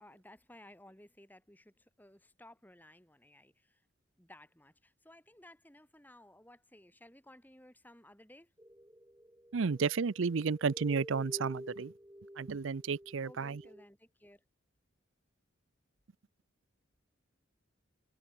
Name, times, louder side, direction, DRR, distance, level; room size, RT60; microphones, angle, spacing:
voice 1, 0.0-3.8 4.2-8.5 13.2-14.4, left 1 dB, 10° left, 5.3 m, -58 dB
sound 1, 8.6-13.8, equal, 15° right, 2.3 m, -49 dB
voice 2, 9.5-11.9 12.4-13.6, right 5 dB, 75° right, 0.5 m, -32 dB
head